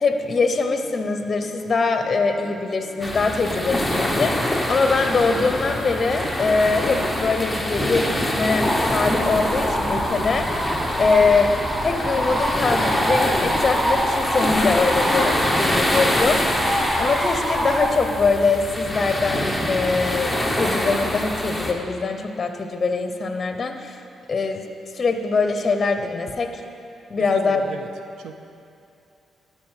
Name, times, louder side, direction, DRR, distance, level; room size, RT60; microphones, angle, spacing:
voice 1, 0.0-10.5 11.0-11.5 11.8-16.4 17.0-24.0 24.3-24.6 24.9-26.6 27.1-27.6, left 4 dB, 40° left, 6 dB, 0.8 m, -22 dB
Piano, 0.8-20.0, right 1 dB, 40° right, 1.9 m, -45 dB
sound 1, 3.0-21.7, left 1 dB, 5° left, 1.0 m, -25 dB
sound 2, 8.6-17.9, equal, 20° right, 1.1 m, -26 dB
voice 2, 27.2-27.9 28.2-28.4, right 6 dB, 80° right, 7 dB, 0.6 m, -36 dB
12.5 x 4.6 x 5.8 m, 2.6 s
cardioid pair, 75°, 0 cm